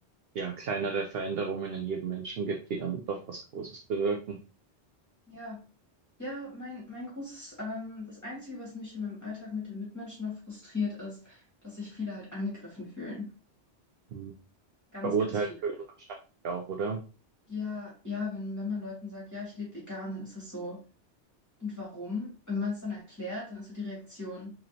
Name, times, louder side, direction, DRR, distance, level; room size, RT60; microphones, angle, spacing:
voice 1, 0.3-4.4 14.1-14.3 15.0-15.7 16.4-17.0, right 5 dB, 65° right, 3 dB, 0.8 m, -32 dB
voice 2, 5.3-5.6 6.2-13.3 14.9-15.4 17.5-20.8 21.6-24.5, left 3 dB, 15° left, -6 dB, 1.9 m, -37 dB
5.0 x 3.1 x 2.8 m, 0.34 s
omnidirectional pair, 1.1 m